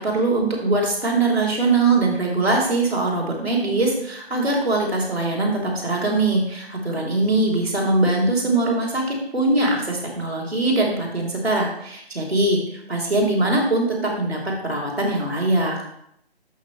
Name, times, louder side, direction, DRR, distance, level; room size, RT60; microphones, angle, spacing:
voice 1, 0.0-12.6 12.9-15.8, right 2 dB, 75° right, -1 dB, 3.3 m, -22 dB
12.0 x 5.9 x 3.2 m, 0.74 s
figure-of-eight pair, 155°, 31 cm